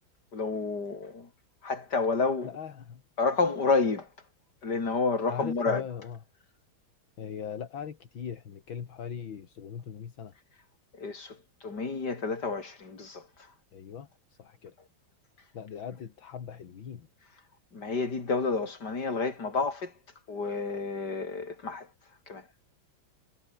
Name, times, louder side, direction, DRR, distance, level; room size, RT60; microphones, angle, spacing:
voice 1, 0.3-1.3 1.6-2.5 3.2-4.1 4.6-5.8 10.9-13.3 17.7-19.9 20.3-21.9 22.3-22.4, left 4 dB, 55° left, 4.3 m, -30 dB
voice 2, 2.4-3.0 5.3-6.2 7.2-10.3 13.7-14.1 14.4-14.7 15.5-17.1, left 7 dB, 75° left, 2.6 m, -39 dB
omnidirectional pair, 2.2 m